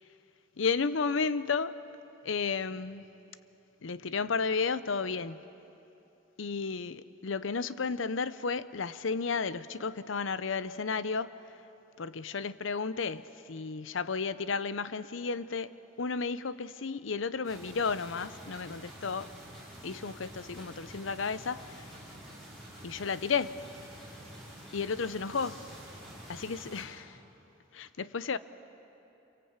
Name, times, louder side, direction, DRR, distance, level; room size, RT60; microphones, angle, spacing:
voice 1, 0.6-1.8 2.2-3.0 3.8-5.4 6.4-11.3 12.0-15.7 16.0-19.3 19.8-21.9 22.8-23.5 24.7-25.6 26.3-27.2 27.7-28.4, left 5 dB, 85° left, 0.7 m, -33 dB
sound 1, 17.4-26.8, right 1 dB, ahead, 6.8 m, -48 dB
26.0 x 23.5 x 8.2 m
head